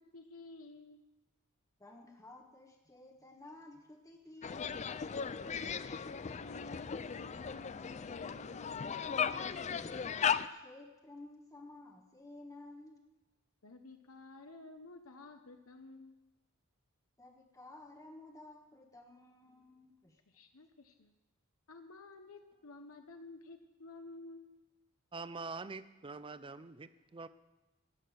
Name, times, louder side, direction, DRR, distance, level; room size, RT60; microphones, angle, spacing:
voice 1, 0.1-1.0 5.5-8.9 13.6-16.3 20.3-21.1 21.7-24.6, left 2 dB, 70° left, 6 dB, 1.0 m, -53 dB
voice 2, 1.8-5.0 9.7-13.0 17.2-20.2, left 2 dB, 15° left, 3 dB, 1.1 m, -54 dB
sound 1, 4.4-10.5, left 6 dB, 30° left, 0.4 m, -37 dB
voice 3, 25.1-27.3, right 4 dB, 25° right, 14 dB, 0.5 m, -45 dB
14.5 x 6.6 x 9.5 m, 1.1 s
head